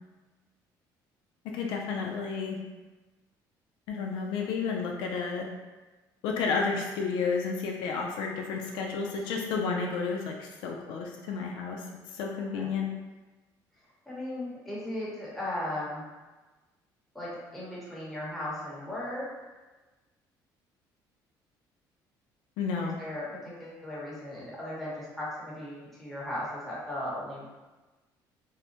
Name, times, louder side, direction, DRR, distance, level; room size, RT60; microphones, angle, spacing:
voice 1, 1.4-2.6 3.9-5.5 6.2-11.9 12.1-12.9 22.6-23.0, left 5 dB, 85° left, 0 dB, 0.4 m, -31 dB
voice 2, 14.1-16.0 17.1-19.2 22.8-23.3 23.6-27.4, left 1 dB, ahead, -8 dB, 0.9 m, -37 dB
2.6 x 2.0 x 2.8 m, 1.2 s
cardioid pair, 115°, 8 cm